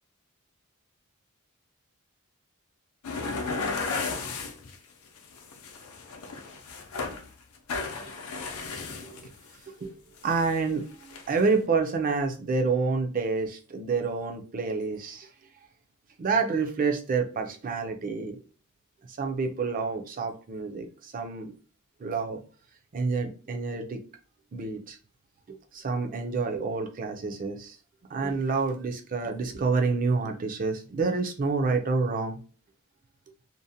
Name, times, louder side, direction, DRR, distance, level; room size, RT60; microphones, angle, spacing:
sound 1, 3.0-4.7 5.2-7.3 7.5-9.5 10.2-10.6 11.0-11.5, left 4 dB, 80° left, 0.5 m, -34 dB
voice 1, 8.8-9.2 9.7-9.9 10.2-15.3 16.2-18.4 19.1-21.5 22.0-22.4 22.9-24.0 24.5-25.0 25.5-27.8 28.1-32.4, right 4 dB, 40° right, 4 dB, 0.4 m, -28 dB
2.6 x 2.0 x 2.6 m, 0.37 s
head